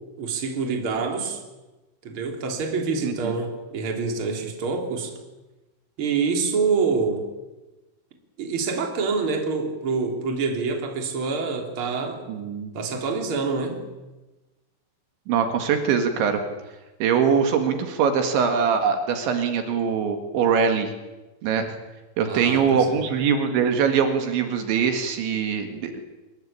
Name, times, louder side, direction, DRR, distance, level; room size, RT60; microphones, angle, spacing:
voice 1, 0.2-1.4 2.0-5.1 6.0-7.2 8.4-12.2 12.7-13.8 22.3-23.0, right 4 dB, 30° right, 3 dB, 3.5 m, -26 dB
voice 2, 3.0-3.4 12.3-12.7 15.3-16.4 17.0-20.9 21.4-21.7 22.2-25.9, right 6 dB, 70° right, 6 dB, 4.1 m, -22 dB
24.5 x 21.5 x 8.8 m, 1.1 s
omnidirectional pair, 5.6 m